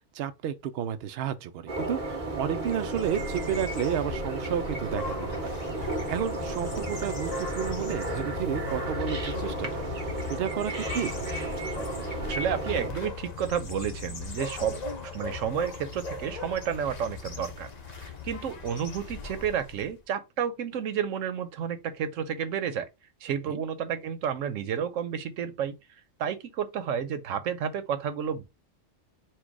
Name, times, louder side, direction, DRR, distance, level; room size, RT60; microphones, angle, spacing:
voice 1, 0.1-5.5 6.1-9.8 10.3-11.1 23.5-23.6, right 9 dB, 60° right, 0.7 m, -32 dB
sound 1, 1.7-12.9, right 2 dB, 40° right, 1.3 m, -33 dB
sound 2, 2.6-19.9, left 4 dB, 45° left, 0.6 m, -38 dB
voice 2, 12.3-14.8 15.1-22.9 23.2-25.7 26.2-28.4, right 8 dB, 85° right, 1.1 m, -31 dB
4.5 x 2.2 x 4.6 m
omnidirectional pair, 1.3 m